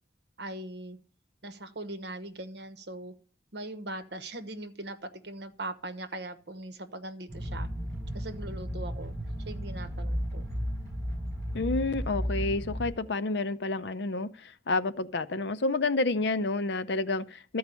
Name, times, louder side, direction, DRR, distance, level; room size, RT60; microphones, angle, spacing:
voice 1, 0.4-1.0 1.4-3.1 3.5-7.7 8.1-9.2 9.4-10.5, right 2 dB, 65° right, 1.1 m, -40 dB
sound 1, 7.3-12.9, equal, 35° right, 7.9 m, -34 dB
voice 2, 11.5-17.6, left 3 dB, 65° left, 0.6 m, -29 dB
13.0 x 4.8 x 8.3 m
head